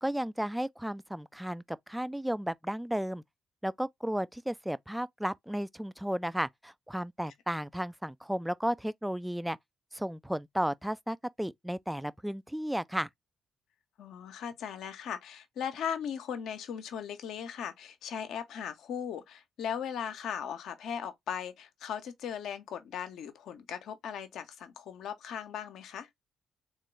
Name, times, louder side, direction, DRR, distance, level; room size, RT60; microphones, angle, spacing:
voice 1, 0.0-3.2 3.6-9.6 9.9-13.1, equal, 5° right, 0.4 m, -34 dB
voice 2, 14.0-26.1, left 8 dB, 65° left, 0.7 m, -38 dB
3.7 x 3.1 x 3.2 m
figure-of-eight pair, 40°, 0 cm